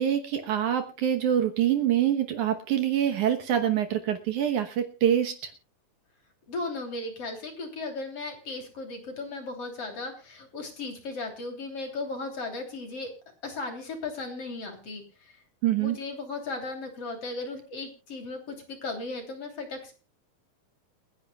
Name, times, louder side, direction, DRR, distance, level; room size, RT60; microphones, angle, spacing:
voice 1, 0.0-5.5 15.6-16.0, right 10 dB, 65° right, 7 dB, 2.3 m, -25 dB
voice 2, 6.5-13.1 13.4-15.4 15.8-19.9, left 3 dB, 45° left, 4 dB, 3.9 m, -36 dB
29.0 x 10.0 x 2.3 m, 0.32 s
omnidirectional pair, 4.1 m